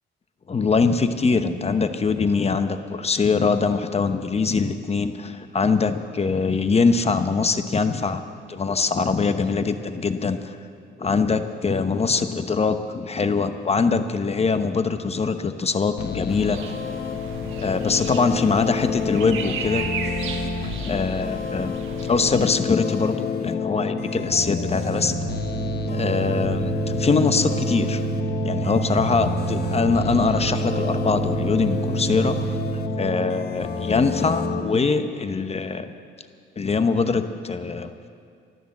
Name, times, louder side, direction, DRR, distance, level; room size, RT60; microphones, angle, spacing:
voice 1, 0.5-8.2 8.5-10.6 11.0-16.6 17.6-19.9 20.6-21.7 22.0-25.1 25.9-28.0 28.4-32.6 33.0-35.9 36.6-37.9, left 4 dB, 30° left, 9 dB, 0.9 m, -23 dB
sound 1, 16.0-34.6, left 6 dB, 55° left, 1.2 m, -29 dB
sound 2, 16.3-22.5, right 6 dB, 85° right, 1.3 m, -35 dB
sound 3, 23.7-33.5, right 8 dB, 55° right, 1.2 m, -29 dB
14.5 x 12.0 x 7.3 m, 2.2 s
cardioid pair, 90°, 20 cm